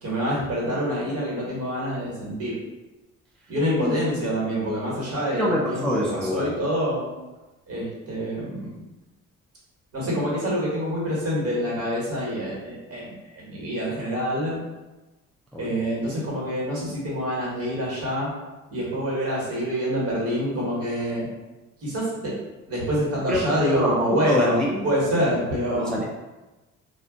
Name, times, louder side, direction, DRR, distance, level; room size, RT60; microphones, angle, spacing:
voice 1, 0.0-2.6 3.5-7.0 7.7-8.7 9.9-14.6 15.6-18.3 18.7-21.3 21.8-22.3 22.7-24.6 24.8-26.0, equal, 50° right, -5 dB, 1.4 m, -26 dB
voice 2, 5.3-6.5 15.5-15.7 23.3-23.4 23.7-24.0 24.3-24.9 25.7-26.0, left 1 dB, ahead, -4 dB, 0.4 m, -25 dB
2.3 x 2.2 x 3.6 m, 1.1 s
cardioid pair, 90°, 30 cm